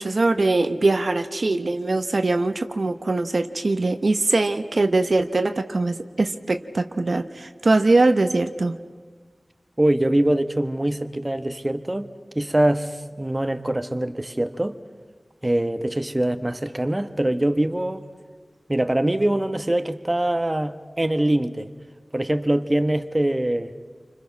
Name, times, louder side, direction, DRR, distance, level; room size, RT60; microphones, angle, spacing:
voice 1, 0.0-8.8, right 2 dB, 70° right, 8 dB, 0.8 m, -22 dB
voice 2, 9.8-12.1 12.3-14.8 15.4-18.0 18.7-21.7 22.1-23.7, right 1 dB, 25° right, 9 dB, 1.1 m, -23 dB
28.5 x 25.0 x 5.9 m, 1.5 s
wide cardioid pair, 60°, 0 cm